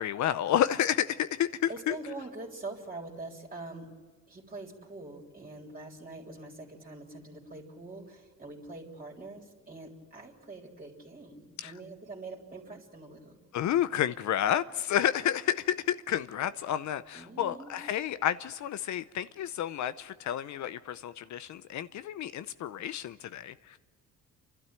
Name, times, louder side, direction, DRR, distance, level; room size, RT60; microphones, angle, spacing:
voice 1, 0.0-2.0 11.6-11.7 13.5-23.8, left 11 dB, 70° left, 0.7 m, -30 dB
voice 2, 1.7-3.9 4.3-13.4 17.1-17.7, right 2 dB, 30° right, 3.5 m, -44 dB
29.0 x 12.5 x 9.0 m
cardioid pair, 90°, 30 cm